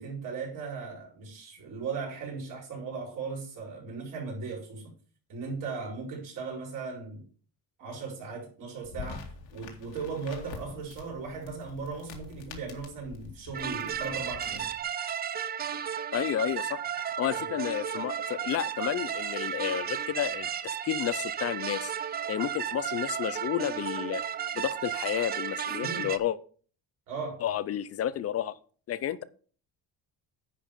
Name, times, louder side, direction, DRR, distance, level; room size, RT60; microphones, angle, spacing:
voice 1, 0.0-4.9 5.3-7.2 7.8-14.7 17.4-17.5 25.8-26.1 27.1-27.4, right 4 dB, 50° right, -2 dB, 4.8 m, -37 dB
sound 1, 8.8-14.8, left 6 dB, 80° left, 2.2 m, -46 dB
sound 2, 13.5-26.2, right 8 dB, 25° right, 0.4 m, -33 dB
voice 2, 16.1-16.8 17.2-21.9 22.3-24.2 24.5-26.4 27.4-28.6 28.9-29.2, left 10 dB, 35° left, 17 dB, 0.4 m, -31 dB
10.0 x 5.2 x 5.5 m, 0.42 s
cardioid pair, 165°, 42 cm